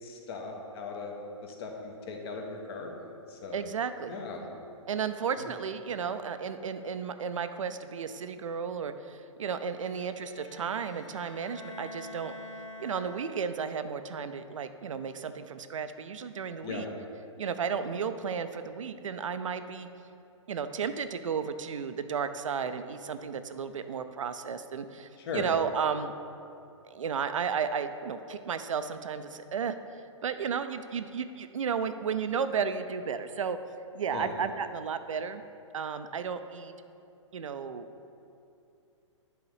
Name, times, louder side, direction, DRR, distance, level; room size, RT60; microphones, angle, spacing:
voice 1, 0.0-3.7 4.1-4.5 5.4-5.5 16.6-16.9 25.2-25.5 34.1-34.3, left 4 dB, 50° left, 2 dB, 1.2 m, -39 dB
voice 2, 3.5-4.1 4.9-12.3 12.8-16.9 17.4-19.9 20.5-26.1 26.9-29.8 30.2-33.6 33.9-35.4 35.7-36.7 37.3-38.1, right 6 dB, 75° right, 10 dB, 0.5 m, -33 dB
Bowed string instrument, 9.6-13.7, left 1 dB, 70° left, 0.9 m, -47 dB
10.0 x 3.9 x 4.8 m, 2.6 s
hypercardioid pair, 120°, 16 cm